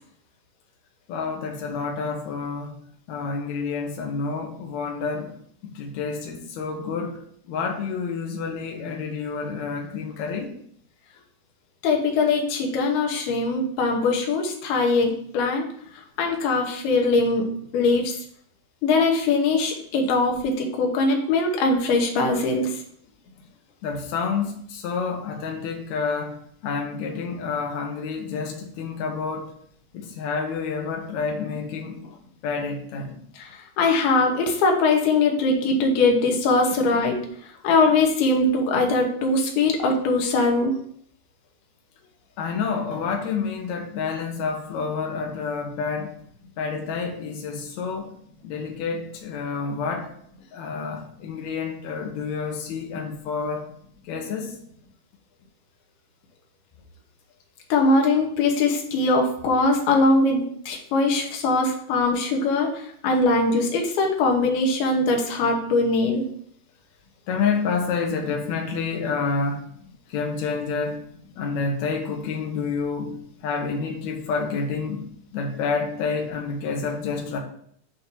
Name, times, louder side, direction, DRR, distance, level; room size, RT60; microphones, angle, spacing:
voice 1, 1.1-2.8 3.1-10.5 23.8-29.6 29.9-33.2 42.4-46.2 46.6-48.1 48.4-50.2 50.5-53.7 54.0-54.6 67.3-69.7 70.1-71.0 71.4-73.2 73.4-75.1 75.3-77.4, left 5 dB, 65° left, 1.9 m, -29 dB
voice 2, 11.8-15.7 16.2-17.5 17.7-18.1 18.8-22.8 33.4-37.2 37.6-40.7 57.7-66.3, left 3 dB, 85° left, 3.1 m, -21 dB
7.8 x 2.8 x 5.9 m
omnidirectional pair, 4.3 m